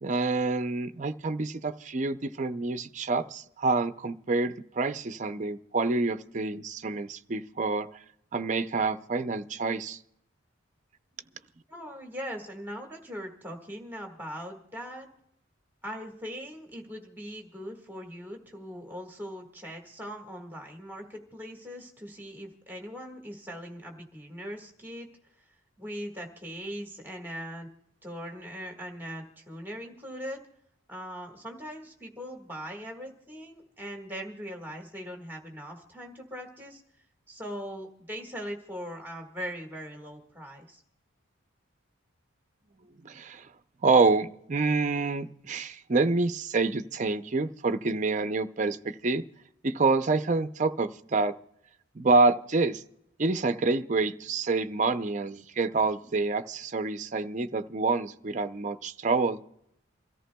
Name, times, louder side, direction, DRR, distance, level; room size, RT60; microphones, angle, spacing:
voice 1, 0.0-7.9 8.3-10.0 43.0-43.5 43.8-49.2 49.6-51.3 52.0-52.8 53.2-59.4, right 3 dB, 35° right, 10 dB, 0.5 m, -27 dB
voice 2, 11.7-15.1 15.8-25.1 25.8-27.7 28.0-30.4 30.9-36.8 37.3-40.8, equal, 10° right, 2 dB, 1.6 m, -40 dB
28.0 x 14.0 x 2.2 m, 0.77 s
head